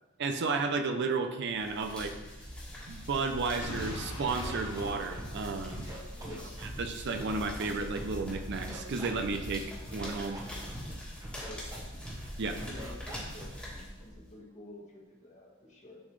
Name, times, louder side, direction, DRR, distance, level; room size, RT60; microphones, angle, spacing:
voice 1, 0.2-2.2 2.9-5.8 6.8-9.7 9.9-10.4 12.4-12.6, right 4 dB, 60° right, 7 dB, 0.5 m, -32 dB
sound 1, 1.5-14.3, equal, 5° left, 1.6 m, -43 dB
Boom, 3.6-6.5, left 1 dB, 85° left, 1.5 m, -42 dB
Scratching (performance technique), 3.6-4.0 4.2-5.4 5.7-6.8 7.1-8.2 8.5-9.6 9.9-10.9 11.2-11.8 12.0-12.3 12.6-13.4, right 1 dB, 20° right, 1.0 m, -43 dB
voice 2, 6.1-6.6 11.3-11.9 12.5-16.0, left 1 dB, 35° left, -3 dB, 1.5 m, -50 dB
10.0 x 3.9 x 3.2 m, 1.1 s
head